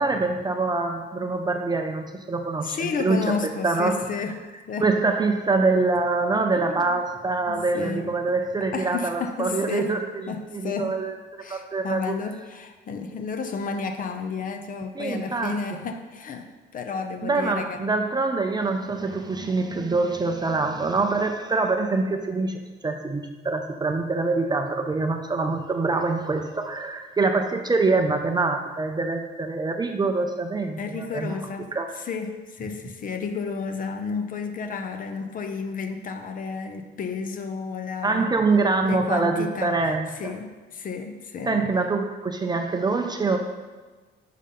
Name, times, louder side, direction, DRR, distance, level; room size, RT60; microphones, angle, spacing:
voice 1, 0.0-3.9 4.8-11.2 11.5-12.1 15.0-15.6 17.2-31.3 31.7-31.9 38.0-40.4 41.4-43.4, right 3 dB, 20° right, 5 dB, 0.4 m, -25 dB
voice 2, 2.6-4.3 4.7-4.9 6.6-7.0 7.5-8.1 8.7-9.9 10.3-10.9 11.4-17.8 30.8-38.3 38.8-39.8 40.2-41.6, left 5 dB, 45° left, 6 dB, 0.5 m, -32 dB
5.5 x 3.5 x 5.1 m, 1.3 s
cardioid pair, 120°, 20 cm